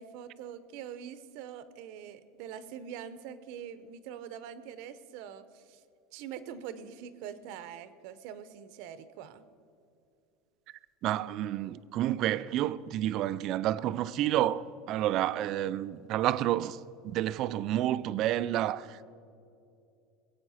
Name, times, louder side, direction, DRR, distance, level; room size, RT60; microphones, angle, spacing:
voice 1, 0.0-5.8 6.1-9.4, right 8 dB, 50° right, 0.7 m, -44 dB
voice 2, 11.0-19.0, right 13 dB, 35° right, 0.4 m, -30 dB
21.0 x 8.7 x 5.6 m
cardioid pair, 175°, 0 cm